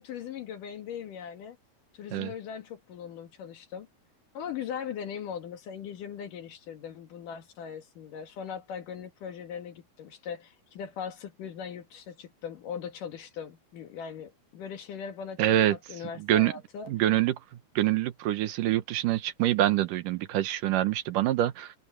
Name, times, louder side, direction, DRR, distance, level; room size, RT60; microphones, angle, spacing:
voice 1, 0.0-1.6 1.9-3.9 4.3-16.9, left 7 dB, 65° left, 3.2 m, -40 dB
voice 2, 15.4-15.8 16.3-16.5 16.9-17.4 17.8-21.7, right 13 dB, 70° right, 2.5 m, -25 dB
omnidirectional pair, 4.1 m